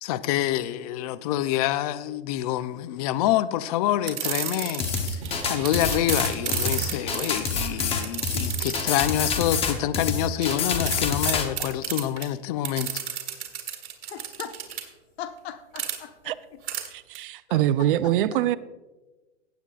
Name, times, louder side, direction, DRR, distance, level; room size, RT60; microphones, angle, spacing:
voice 1, 0.0-5.2 5.5-12.9, left 12 dB, 35° left, 0.4 m, -27 dB
sound 1, 4.0-5.3 5.6-9.3 10.4-10.6 10.9-11.0 11.2-12.3 12.6-14.8 15.8-16.0 16.7-16.9 17.1-17.2, right 10 dB, 70° right, 2.2 m, -31 dB
sound 2, 4.8-11.5, left 5 dB, 15° left, 0.9 m, -27 dB
sound 3, 5.2-10.4, right 2 dB, 20° right, 2.5 m, -41 dB
voice 2, 14.1-14.6 15.2-16.6 17.5-17.9, left 9 dB, 65° left, 1.1 m, -40 dB
voice 3, 16.9-18.6, right 13 dB, 50° right, 0.5 m, -24 dB
17.0 x 8.3 x 2.4 m
hypercardioid pair, 145°, 34 cm